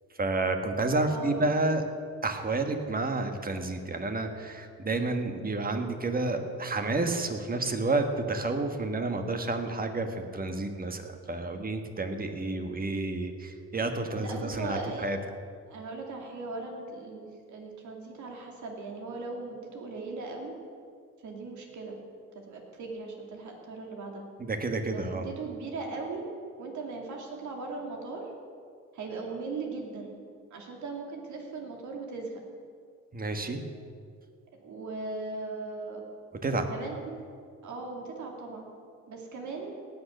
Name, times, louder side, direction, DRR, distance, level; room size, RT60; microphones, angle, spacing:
voice 1, 0.2-1.8 2.2-15.2 24.4-25.3 33.1-33.6 36.4-36.7, right 2 dB, 30° right, 6 dB, 1.5 m, -30 dB
voice 2, 1.1-1.4 14.1-15.1 15.7-20.5 21.2-22.0 22.3-24.2 24.9-26.2 26.6-28.3 28.9-30.1 30.5-32.4 34.6-36.0 36.7-37.2 37.6-38.6 39.1-39.8, right 3 dB, 75° right, 1 dB, 2.7 m, -38 dB
18.0 x 6.7 x 6.5 m, 2.2 s
cardioid pair, 90°, 30 cm